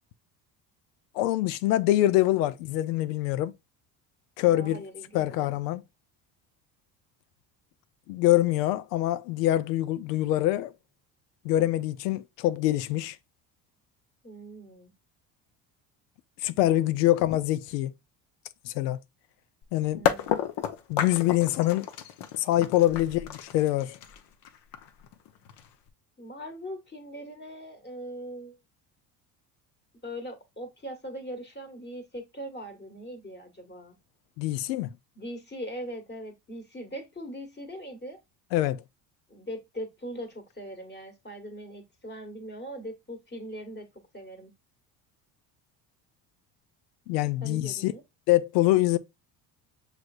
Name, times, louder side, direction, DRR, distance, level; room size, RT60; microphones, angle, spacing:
voice 1, 1.1-3.5 4.4-4.8 5.1-5.8 8.1-10.7 11.4-13.2 16.4-17.9 18.6-19.0 19.7-20.0 20.9-21.9 22.4-24.0 34.4-34.9 38.5-38.8 47.1-47.9 48.3-49.0, left 15 dB, 90° left, 0.5 m, -25 dB
voice 2, 4.4-5.6 14.2-14.9 19.9-20.5 26.2-28.6 30.0-34.0 35.1-38.2 39.3-43.9 44.1-44.5 47.4-48.0, equal, 20° left, 1.5 m, -40 dB
sound 1, 19.6-19.7 20.0-25.9, left 9 dB, 60° left, 0.9 m, -31 dB
6.2 x 3.3 x 2.4 m
hypercardioid pair, 70°, 47 cm